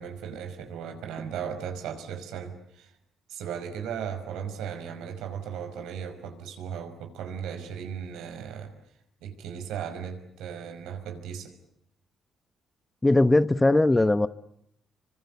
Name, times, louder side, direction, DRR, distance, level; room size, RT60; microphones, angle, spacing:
voice 1, 0.0-2.9 3.3-8.7 9.2-11.5, right 7 dB, 90° right, 7 dB, 5.4 m, -36 dB
voice 2, 13.0-14.3, left 2 dB, 15° left, 14 dB, 1.1 m, -20 dB
26.0 x 25.5 x 8.3 m, 0.74 s
cardioid pair, 90°, 0 cm